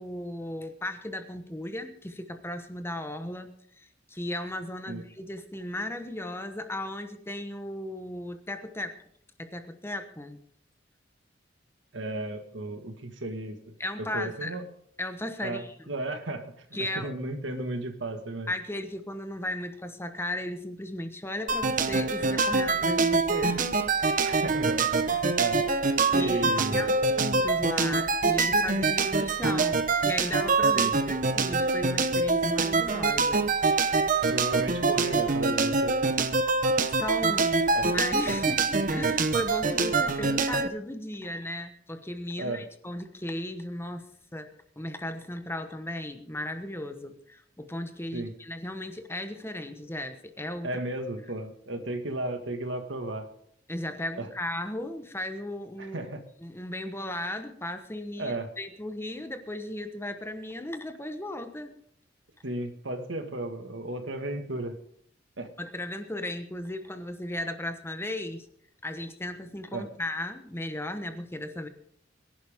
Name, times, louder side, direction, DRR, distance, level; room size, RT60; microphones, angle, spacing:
voice 1, 0.0-9.0 9.4-10.4 13.8-14.6 15.0-15.9 16.7-17.1 18.5-23.6 26.1-33.5 36.9-44.1 44.3-50.8 53.7-56.1 56.4-61.7 65.6-68.5 68.8-71.7, left 1 dB, 15° left, 8 dB, 1.2 m, -36 dB
voice 2, 11.9-13.7 14.1-14.7 15.4-16.5 16.8-18.5 24.2-25.7 26.1-26.9 30.7-31.0 34.3-35.9 37.7-37.9 38.3-38.4 42.4-42.6 48.1-48.3 50.6-53.3 54.2-54.3 55.8-56.2 58.2-58.5 62.4-64.8 65.4-65.5 69.7-69.9, right 2 dB, 80° right, 6 dB, 1.8 m, -34 dB
sound 1, 21.5-40.7, right 3 dB, 45° right, 1.0 m, -25 dB
22.5 x 11.0 x 3.6 m, 0.67 s
head